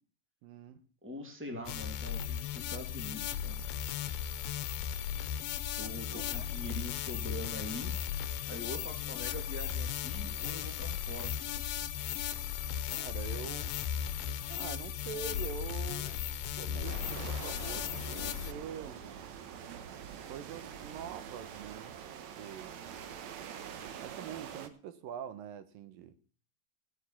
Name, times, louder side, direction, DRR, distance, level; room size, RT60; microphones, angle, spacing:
voice 1, 0.4-0.8 6.1-6.5 12.9-13.8 14.5-16.3 16.6-19.0 20.2-22.0 22.4-22.8 24.0-26.1, right 8 dB, 75° right, 2.6 m, -44 dB
voice 2, 1.0-3.6 5.8-7.9 8.5-11.3, left 1 dB, 5° right, 2.4 m, -43 dB
sound 1, 1.7-18.5, left 9 dB, 80° left, 2.7 m, -36 dB
sound 2, 16.8-24.7, right 8 dB, 60° right, 2.2 m, -45 dB
15.5 x 8.2 x 7.1 m
omnidirectional pair, 4.2 m